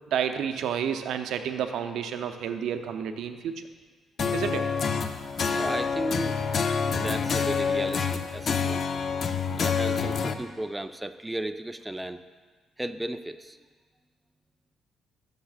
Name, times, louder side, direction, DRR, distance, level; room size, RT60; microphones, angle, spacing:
voice 1, 0.1-3.6 4.3-4.7, right 8 dB, 80° right, 8 dB, 0.5 m, -30 dB
acoustic gutar, 4.2-10.3, left 5 dB, 55° left, 0.5 m, -27 dB
voice 2, 5.5-6.4 6.9-8.8 9.5-12.2 12.8-13.6, right 1 dB, 10° right, 9 dB, 0.3 m, -34 dB
13.0 x 6.7 x 2.4 m, 1.5 s
cardioid pair, 90°, 0 cm